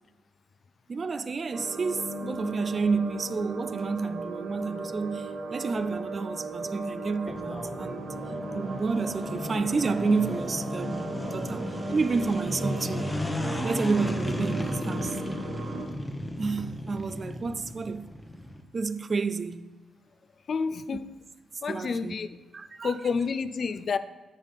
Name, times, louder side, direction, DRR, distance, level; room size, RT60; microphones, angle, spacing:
voice 1, 0.9-8.1 8.5-13.1 13.6-15.2 16.4-18.1 18.7-19.6 21.7-22.2 22.5-23.0, right 4 dB, 45° right, 0.5 m, -30 dB
sound 1, 1.5-15.9, right 2 dB, 65° right, 1.1 m, -37 dB
sound 2, 7.3-18.6, left 1 dB, 15° left, 0.9 m, -34 dB
voice 2, 20.5-21.1 21.6-22.3 22.8-24.0, left 5 dB, 55° left, 0.4 m, -29 dB
9.0 x 4.1 x 5.6 m
cardioid pair, 65°, 0 cm